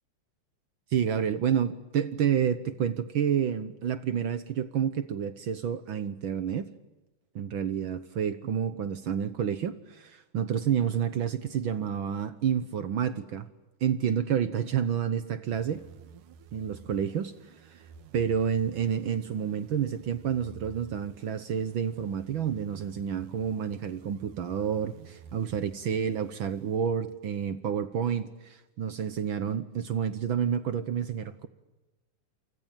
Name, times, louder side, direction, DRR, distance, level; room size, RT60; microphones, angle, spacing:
voice 1, 0.9-6.7 7.3-13.5 13.8-15.9 16.5-17.3 17.6-17.8 18.1-31.5, right 8 dB, 70° right, 1.2 m, -29 dB
sound 1, 15.5-27.2, right 6 dB, 85° right, 2.9 m, -52 dB
29.0 x 24.5 x 7.5 m
omnidirectional pair, 3.6 m